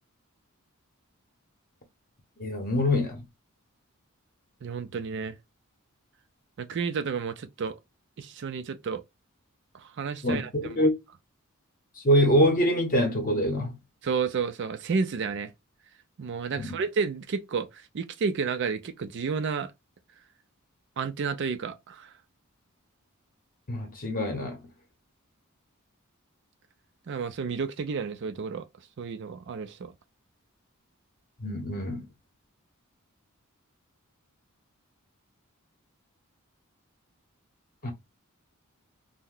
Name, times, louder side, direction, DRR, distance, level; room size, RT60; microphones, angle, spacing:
voice 1, 2.4-3.2 10.2-10.9 12.0-13.7 16.6-16.8 23.7-24.6 31.4-32.0 37.8-37.9, equal, 40° left, 0.8 m, -24 dB
voice 2, 4.6-5.4 6.6-7.7 8.2-9.0 9.7-10.9 14.0-15.5 16.2-19.7 21.0-22.1 27.1-28.7 29.0-29.9, right 5 dB, 55° right, 0.4 m, -31 dB
2.7 x 2.1 x 3.7 m
head